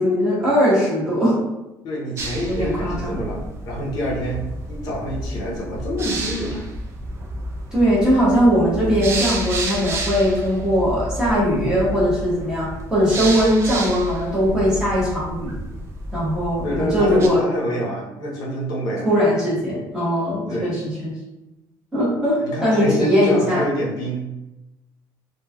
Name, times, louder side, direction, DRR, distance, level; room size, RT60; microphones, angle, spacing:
voice 1, 0.0-1.3 2.5-3.2 7.7-15.5 16.1-17.4 19.0-21.1 21.9-23.6, equal, 10° right, -9 dB, 1.0 m, -20 dB
voice 2, 1.8-6.7 16.6-19.1 20.5-20.7 22.4-24.3, equal, 55° left, -4 dB, 0.7 m, -27 dB
sound 1, 2.2-17.3, right 1 dB, 35° right, 0.4 m, -30 dB
3.1 x 2.2 x 2.2 m, 0.98 s
cardioid pair, 170°, 8 cm